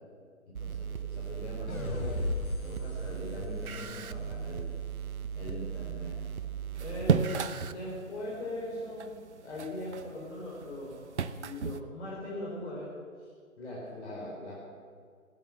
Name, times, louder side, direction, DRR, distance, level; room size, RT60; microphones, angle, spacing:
voice 1, 0.5-4.7 5.4-6.2 6.8-9.1 9.4-11.0 11.4-12.9 13.2-13.3 13.6-14.5, left 1 dB, 55° left, -4 dB, 4.5 m, -40 dB
sound 1, 0.5-7.7, right 8 dB, 80° right, 0.9 m, -38 dB
sound 2, 1.7-4.9, left 2 dB, 75° left, 2.5 m, -37 dB
sound 3, 6.7-11.8, right 6 dB, 55° right, 0.8 m, -34 dB
16.0 x 10.5 x 7.8 m, 2.1 s
figure-of-eight pair, 150°, 42 cm